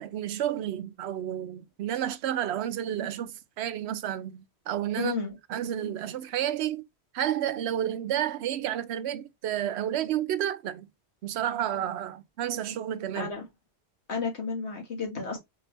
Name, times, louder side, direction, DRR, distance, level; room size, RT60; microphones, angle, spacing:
voice 1, 0.0-5.1 5.5-6.8 7.1-10.9 11.2-13.3, right 11 dB, 80° right, 0.8 m, -31 dB
voice 2, 5.0-5.4 13.2-13.5 14.1-15.4, left 5 dB, 85° left, 1.8 m, -32 dB
4.4 x 3.3 x 2.9 m
omnidirectional pair, 1.1 m